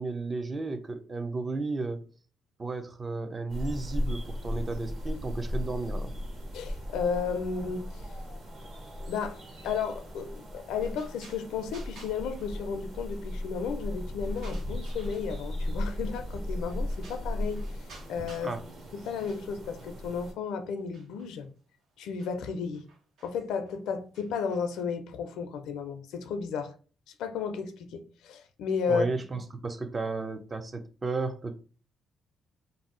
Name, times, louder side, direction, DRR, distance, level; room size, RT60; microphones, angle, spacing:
voice 1, 0.0-2.0 2.6-6.1 18.4-18.6 28.9-31.6, right 3 dB, 30° right, 0.5 m, -33 dB
sound 1, 3.5-20.3, left 1 dB, 55° right, 1.5 m, -36 dB
voice 2, 6.5-8.0 9.1-9.4 9.6-17.8 18.1-18.5 18.9-21.5 22.0-22.9 23.2-26.7 27.2-29.0, left 6 dB, 90° left, 0.4 m, -33 dB
sound 2, 10.8-13.2 13.6-15.6 16.1-16.4 16.7-18.6 18.9-20.2 20.8-24.8, right 3 dB, 75° right, 0.8 m, -55 dB
2.7 x 2.0 x 3.6 m
cardioid pair, 90°, 0 cm